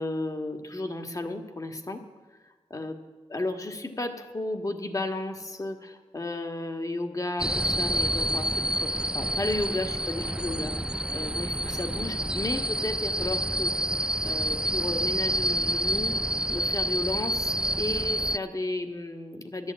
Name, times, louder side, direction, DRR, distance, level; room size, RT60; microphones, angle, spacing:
voice 1, 0.0-2.0 2.7-3.0 3.3-13.7 14.2-16.2 16.5-19.7, left 2 dB, 35° left, 6 dB, 1.6 m, -33 dB
sound 1, 7.4-18.4, right 1 dB, 5° right, 0.4 m, -28 dB
13.0 x 11.0 x 8.7 m, 1.4 s
cardioid pair, 55°, 11 cm